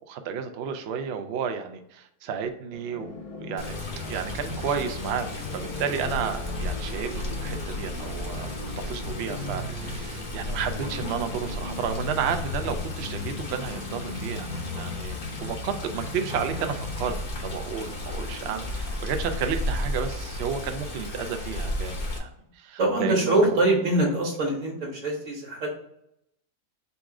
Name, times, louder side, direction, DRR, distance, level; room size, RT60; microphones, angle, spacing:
voice 1, 0.1-8.5 8.8-17.2 17.4-23.6, right 7 dB, 80° right, 6 dB, 0.5 m, -32 dB
sound 1, 2.7-17.7, left 2 dB, 70° left, 1.3 m, -37 dB
Water, 3.6-22.2, left 1 dB, 45° left, 0.6 m, -34 dB
voice 2, 22.8-25.7, right 2 dB, 55° right, -1 dB, 1.4 m, -24 dB
4.0 x 2.4 x 4.7 m, 0.77 s
omnidirectional pair, 1.7 m